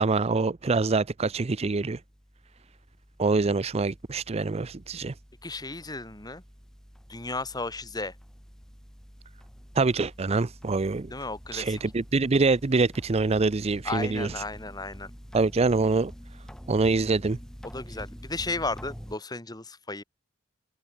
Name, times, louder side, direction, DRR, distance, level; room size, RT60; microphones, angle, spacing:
voice 1, 0.0-2.0 3.2-5.1 9.8-11.1 11.5-14.3 15.3-16.1 16.7-17.4, right 3 dB, 30° right, 0.5 m, -25 dB
sound 1, 1.8-19.2, equal, 5° left, 5.4 m, -47 dB
voice 2, 5.4-6.4 7.1-8.1 11.1-11.8 13.8-15.1 17.6-20.0, left 3 dB, 20° left, 2.5 m, -34 dB
head